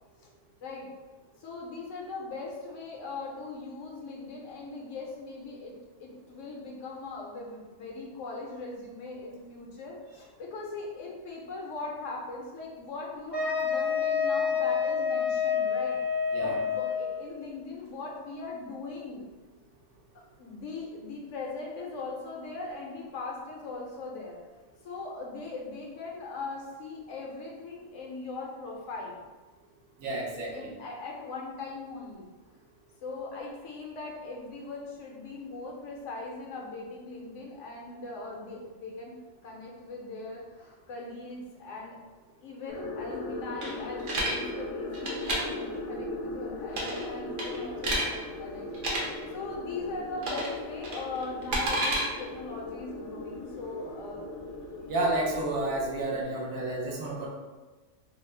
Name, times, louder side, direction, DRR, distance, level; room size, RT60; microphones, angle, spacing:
voice 1, 1.4-16.0 16.4-19.2 20.4-24.4 24.8-29.2 30.5-32.3 33.0-39.1 39.4-42.0 42.4-48.7 49.3-54.3, left 3 dB, 70° left, -1 dB, 0.9 m, -40 dB
Wind instrument woodwind instrument, 13.3-17.2, left 6 dB, 10° left, 0.6 m, -28 dB
voice 2, 30.0-30.7 54.9-57.3, right 2 dB, 80° right, -2 dB, 1.1 m, -30 dB
sound 1, 42.7-56.2, left 2 dB, 90° left, 1.0 m, -39 dB
sound 2, 43.6-44.4 44.9-45.4 46.7-47.1 47.4-48.1 48.7-49.0 50.2-50.5 50.8-52.0, right 1 dB, 55° right, 0.6 m, -29 dB
2.9 x 2.1 x 3.2 m, 1.2 s
omnidirectional pair, 1.4 m